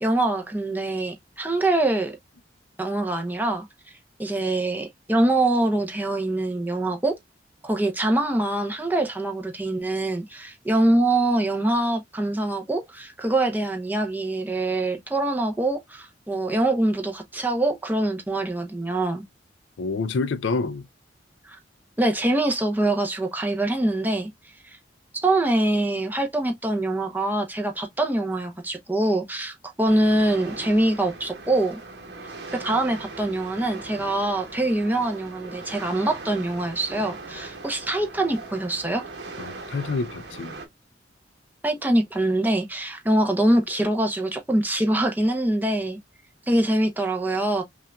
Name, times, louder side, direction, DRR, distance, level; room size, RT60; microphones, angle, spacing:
voice 1, 0.0-2.2 2.8-3.7 4.2-7.2 7.6-19.2 21.5-21.6 22.0-24.3 25.2-31.8 32.5-39.0 41.6-46.0 46.5-47.6, right 1 dB, 10° right, 0.7 m, -24 dB
voice 2, 19.8-20.9 39.4-40.5, left 3 dB, 80° left, 0.5 m, -27 dB
sound 1, 29.8-40.7, right 3 dB, 60° right, 1.1 m, -40 dB
5.5 x 2.4 x 2.2 m
head